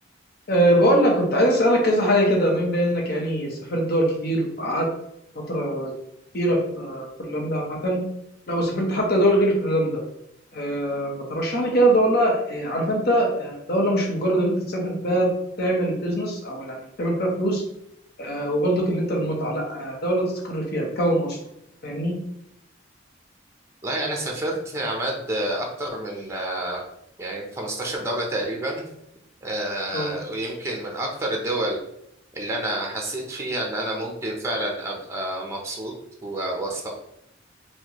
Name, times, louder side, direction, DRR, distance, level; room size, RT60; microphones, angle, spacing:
voice 1, 0.5-4.9 5.3-5.9 6.3-8.0 8.5-10.0 10.5-15.3 15.6-17.6 18.2-21.4 21.8-22.2 29.9-30.2, equal, 55° left, 0 dB, 0.9 m, -22 dB
voice 2, 23.8-26.8 27.2-28.8 29.4-31.8 32.3-35.9 36.2-37.0, right 1 dB, 15° right, 0 dB, 0.6 m, -29 dB
4.2 x 2.2 x 2.9 m, 0.77 s
head